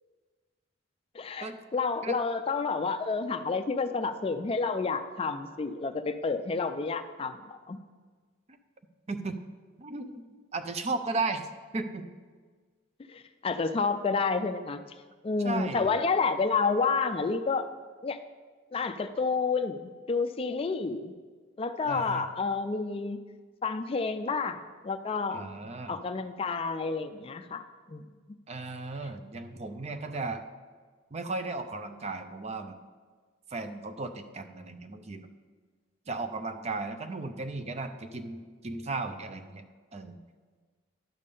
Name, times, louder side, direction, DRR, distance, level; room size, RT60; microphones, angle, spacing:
voice 1, 1.1-7.8 13.1-14.8 15.2-17.6 18.0-18.2 18.7-21.1 21.6-23.2 23.6-24.6 24.8-25.5 25.9-27.6 27.9-28.0, left 4 dB, 30° left, 9 dB, 0.3 m, -29 dB
voice 2, 9.1-9.4 9.8-10.2 10.5-11.5 11.7-12.0 15.4-16.0 21.9-22.3 25.3-26.0 28.5-30.4 31.1-32.8 33.5-35.3 36.1-39.6 39.9-40.2, right 3 dB, 35° right, 8 dB, 0.5 m, -35 dB
10.5 x 3.7 x 6.7 m, 1.5 s
head